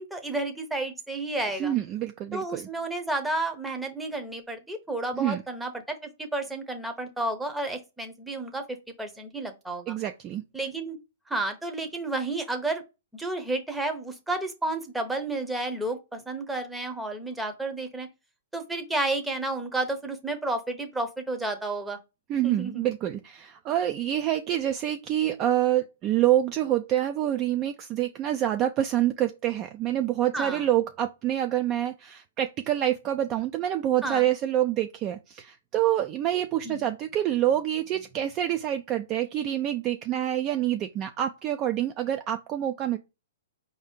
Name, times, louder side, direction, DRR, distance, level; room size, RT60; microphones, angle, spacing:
voice 1, 0.0-1.7 2.3-10.0 10.5-11.0 11.3-12.8 13.1-18.1 18.5-22.0 22.4-22.9 30.3-30.6 34.0-34.3 36.6-36.9, right 2 dB, 5° right, 0.7 m, -31 dB
voice 2, 1.6-2.7 5.1-5.4 9.9-10.4 22.3-43.0, right 12 dB, 25° right, 0.3 m, -27 dB
4.8 x 2.7 x 3.5 m
hypercardioid pair, 160°, 0 cm